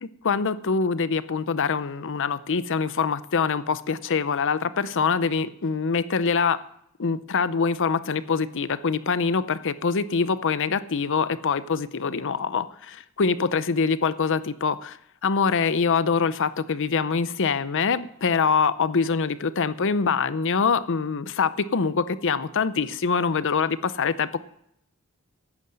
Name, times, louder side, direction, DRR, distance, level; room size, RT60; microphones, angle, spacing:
voice 1, 0.2-6.6 7.0-24.4, left 5 dB, 55° left, 14 dB, 0.6 m, -24 dB
11.0 x 9.6 x 7.6 m, 0.72 s
head